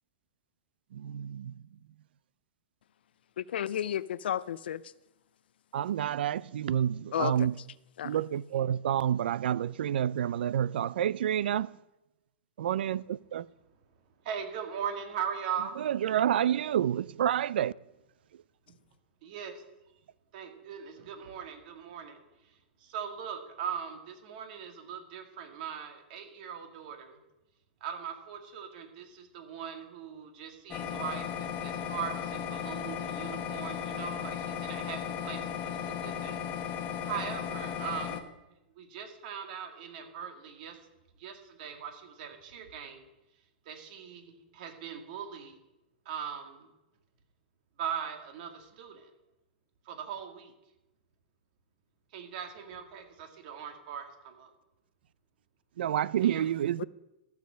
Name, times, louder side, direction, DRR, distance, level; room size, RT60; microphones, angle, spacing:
voice 1, 0.9-1.5 5.7-7.5 8.0-11.7 12.6-13.5 15.8-17.7 55.8-56.8, right 10 dB, 80° right, 0.4 m, -29 dB
voice 2, 3.4-4.8 7.1-7.3 8.0-8.2 56.8-56.9, left 10 dB, 85° left, 0.4 m, -32 dB
voice 3, 14.2-15.8 18.7-18.8 19.2-19.6 20.3-22.2 22.4-27.2 27.8-36.5 36.7-38.2 38.8-40.8 41.2-43.1 43.7-45.6 46.1-46.7 47.8-49.1 49.9-50.5 52.1-54.5 56.2-56.4, right 8 dB, 55° right, 2.1 m, -40 dB
sound 1, 30.7-38.2, left 8 dB, 30° left, 1.0 m, -36 dB
14.0 x 7.2 x 6.3 m
hypercardioid pair, 145°, 5 cm